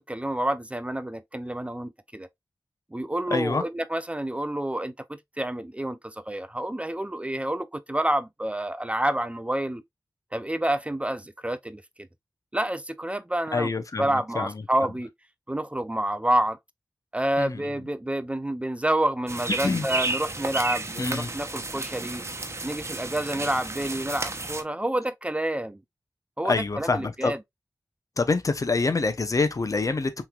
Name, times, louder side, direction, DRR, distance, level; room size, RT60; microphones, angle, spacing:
voice 1, 0.0-2.3 2.9-9.8 10.3-11.8 12.5-13.7 14.0-15.1 15.5-16.6 17.1-22.2 22.6-25.8 26.4-27.4, right 1 dB, 15° right, 0.5 m, -28 dB
voice 2, 3.3-3.6 13.5-14.5 17.4-17.6 19.6-19.9 21.0-21.3 26.4-27.3 28.2-30.1, left 3 dB, 50° left, 0.7 m, -26 dB
sound 1, 19.3-24.6, right 2 dB, 40° right, 0.9 m, -32 dB
5.6 x 3.2 x 2.3 m
cardioid pair, 45°, 7 cm